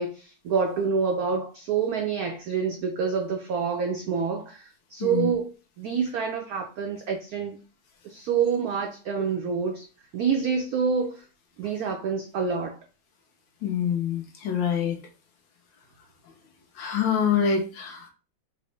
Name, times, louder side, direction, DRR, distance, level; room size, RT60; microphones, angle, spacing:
voice 1, 0.0-5.5 5.8-7.6 8.0-9.8 10.1-11.2 11.6-12.7, right 6 dB, 90° right, 3 dB, 0.8 m, -27 dB
voice 2, 5.0-5.4 13.6-15.0 16.7-18.1, left 7 dB, 70° left, 3 dB, 1.3 m, -26 dB
4.0 x 2.0 x 3.1 m, 0.34 s
omnidirectional pair, 2.1 m